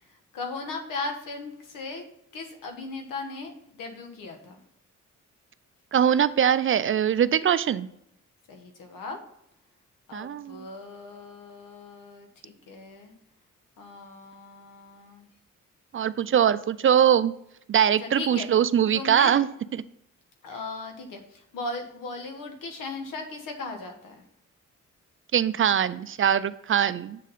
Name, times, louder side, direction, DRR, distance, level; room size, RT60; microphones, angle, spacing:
voice 1, 0.3-2.0 2.3-4.6 8.5-9.2 10.1-13.1 13.8-15.3 17.8-18.5 18.9-19.5 20.4-24.2, left 3 dB, 90° left, 5 dB, 1.3 m, -37 dB
voice 2, 5.9-7.9 10.1-10.7 15.9-17.3 17.7-19.5 25.3-27.2, right 9 dB, 40° right, 15 dB, 0.4 m, -22 dB
7.4 x 4.0 x 5.5 m, 0.75 s
cardioid pair, 70°, 32 cm